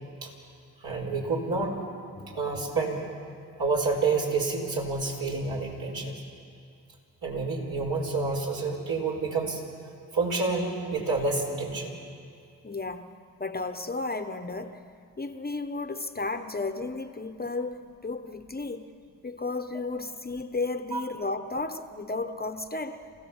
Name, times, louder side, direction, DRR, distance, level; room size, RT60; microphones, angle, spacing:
voice 1, 0.8-1.8 2.3-3.0 3.6-6.1 7.2-9.6 10.1-11.9 20.9-21.0, right 3 dB, 60° right, 5.2 m, -28 dB
voice 2, 12.6-14.8 15.2-18.8 19.2-23.1, left 3 dB, 25° left, 1.1 m, -33 dB
28.0 x 16.0 x 7.3 m
supercardioid pair, 50°, 40 cm